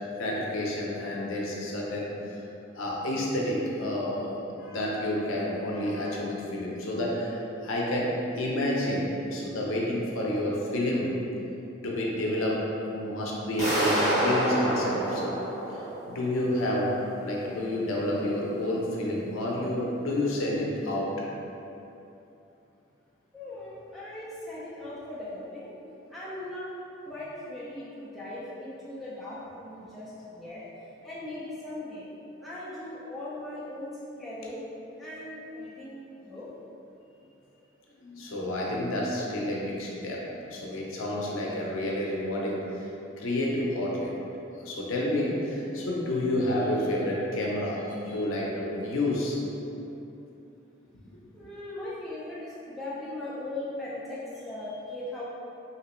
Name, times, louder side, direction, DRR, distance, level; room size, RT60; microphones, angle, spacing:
voice 1, 0.2-2.4 2.8-11.1 11.8-12.6 12.9-15.4 15.7-15.8 16.1-16.9 17.2-21.1 38.0-42.6 43.2-44.1 44.6-49.4, left 1 dB, 85° left, -3 dB, 0.6 m, -29 dB
sound 1, 13.6-16.4, right 1 dB, 15° right, 1.0 m, -27 dB
voice 2, 23.3-25.7 26.1-26.7 27.0-32.1 32.4-34.6 35.0-36.5 51.3-55.2, left 1 dB, ahead, -9 dB, 0.5 m, -39 dB
2.9 x 2.9 x 3.0 m, 2.8 s
head